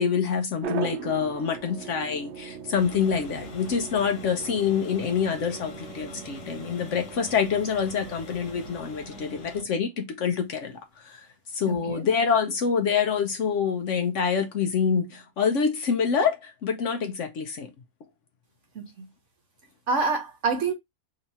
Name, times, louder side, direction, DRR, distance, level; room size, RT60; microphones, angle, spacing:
voice 1, 0.0-11.3 11.5-17.7, left 6 dB, 60° left, 0.8 m, -26 dB
sound 1, 0.6-9.7, right 7 dB, 70° right, 0.6 m, -40 dB
sound 2, 2.7-9.6, left 2 dB, 80° left, 1.6 m, -44 dB
voice 2, 11.7-12.1 18.7-19.0 19.9-20.7, right 4 dB, 55° right, 1.1 m, -27 dB
3.1 x 2.8 x 4.0 m
omnidirectional pair, 1.7 m